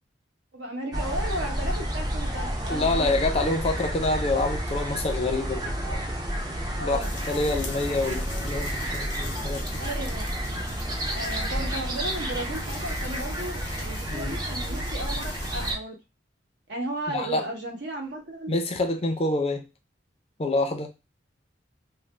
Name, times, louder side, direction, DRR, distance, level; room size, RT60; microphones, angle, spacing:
voice 1, 0.5-3.5 5.8-6.0 6.8-7.1 9.8-10.3 11.1-16.0 16.7-18.6, right 1 dB, 70° right, 0.9 m, -35 dB
sound 1, 0.9-15.8, equal, 20° right, 0.5 m, -30 dB
voice 2, 2.7-5.7 6.8-9.7 14.1-14.4 17.1-17.5 18.5-19.6 20.4-20.9, left 2 dB, 30° left, 0.4 m, -27 dB
sound 2, 7.0-15.7, left 4 dB, 90° left, 0.8 m, -44 dB
2.4 x 2.0 x 3.1 m
head